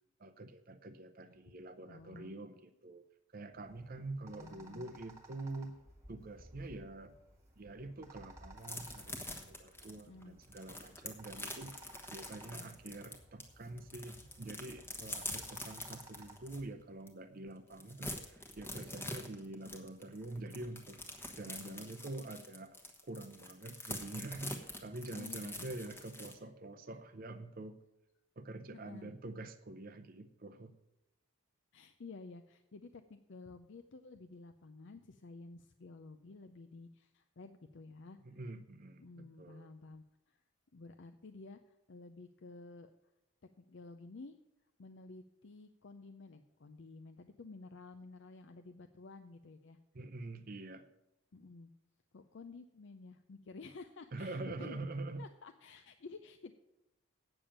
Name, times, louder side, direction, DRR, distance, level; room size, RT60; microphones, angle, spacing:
voice 1, 0.2-3.0 3.3-5.8 6.1-7.2 7.6-11.7 12.1-21.0 21.4-22.8 23.0-27.8 28.4-30.7 38.2-39.7 49.9-50.8 54.1-55.2, right 2 dB, 40° right, 8 dB, 0.6 m, -46 dB
voice 2, 1.8-2.3 4.2-4.9 10.1-10.4 12.5-12.8 21.6-21.9 25.1-25.7 26.4-26.5 28.7-29.1 31.7-38.2 39.0-40.4 40.7-42.9 43.6-44.4 44.8-49.8 51.3-51.7 52.1-54.8 55.2-56.5, left 3 dB, 55° left, 8 dB, 0.5 m, -52 dB
sound 1, 3.5-16.7, right 1 dB, 15° right, 1.5 m, -58 dB
sound 2, 8.6-13.4 13.8-16.6 17.1-17.2 17.5-26.3, left 1 dB, 10° left, 1.1 m, -45 dB
8.8 x 6.9 x 8.7 m, 0.89 s
head